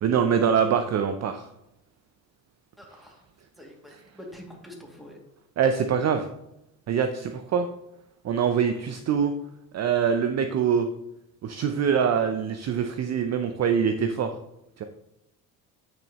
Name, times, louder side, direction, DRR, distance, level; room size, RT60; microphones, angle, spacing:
voice 1, 0.0-1.5 3.9-4.0 5.6-6.3 6.9-7.7 8.2-9.3 9.7-10.9 11.4-14.3 14.8-14.9, right 7 dB, 35° right, 8 dB, 0.6 m, -24 dB
voice 2, 2.8-3.2 3.6-5.2, left 1 dB, ahead, -1 dB, 2.4 m, -45 dB
8.6 x 6.1 x 3.0 m, 0.86 s
hypercardioid pair, 55°, 46 cm